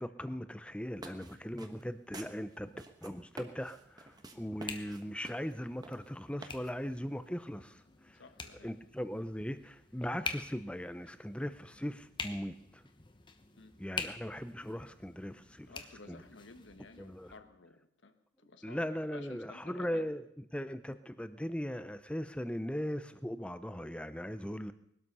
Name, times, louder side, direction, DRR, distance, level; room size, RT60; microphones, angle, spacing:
voice 1, 0.0-2.7 3.0-8.2 8.6-12.8 13.8-15.7 16.1-16.2 17.0-17.3 18.6-24.7, equal, 5° left, 12 dB, 0.6 m, -39 dB
sound 1, 0.8-7.0, right 2 dB, 20° right, 1.3 m, -51 dB
sound 2, 2.2-17.4, left 4 dB, 25° left, 1.1 m, -47 dB
voice 2, 8.1-8.8 13.6-13.8 15.7-18.8 19.1-20.1, left 3 dB, 75° left, 8 dB, 1.5 m, -54 dB
21.0 x 12.5 x 5.5 m, 0.80 s
head